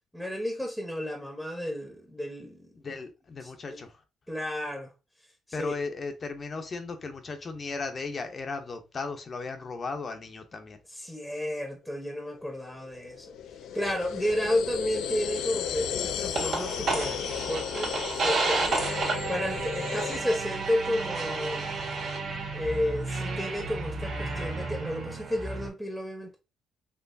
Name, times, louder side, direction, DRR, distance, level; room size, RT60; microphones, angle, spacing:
voice 1, 0.1-2.7 3.4-3.8 4.3-4.9 5.5-5.7 10.9-13.4 13.7-18.8 19.3-21.7 22.5-26.4, left 1 dB, ahead, 1.0 m, -32 dB
voice 2, 2.7-4.0 5.5-10.8, left 4 dB, 40° left, 0.8 m, -36 dB
sound 1, 12.3-20.2, left 9 dB, 85° left, 0.4 m, -34 dB
sound 2, 16.3-25.7, right 3 dB, 60° right, 1.7 m, -31 dB
4.6 x 2.9 x 2.6 m
cardioid pair, 90°, 0 cm